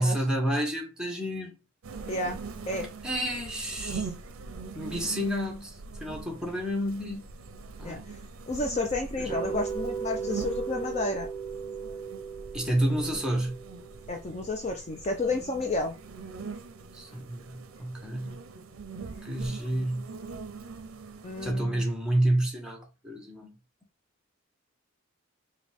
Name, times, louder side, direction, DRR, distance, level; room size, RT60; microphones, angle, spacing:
voice 1, 0.0-1.6 3.0-4.1 4.7-7.2 7.8-8.0 9.2-9.4 12.5-13.6 16.9-18.4 19.2-20.1 21.4-23.6, right 1 dB, 5° right, 0.9 m, -29 dB
sound 1, 1.8-21.5, right 4 dB, 70° right, 0.5 m, -42 dB
voice 2, 2.1-2.4 2.7-2.9 7.8-8.0 8.5-11.3 14.1-15.9 21.2-21.8, left 2 dB, 30° left, 0.4 m, -31 dB
sound 2, 9.3-15.4, right 6 dB, 20° right, 2.3 m, -37 dB
5.1 x 2.2 x 3.4 m
head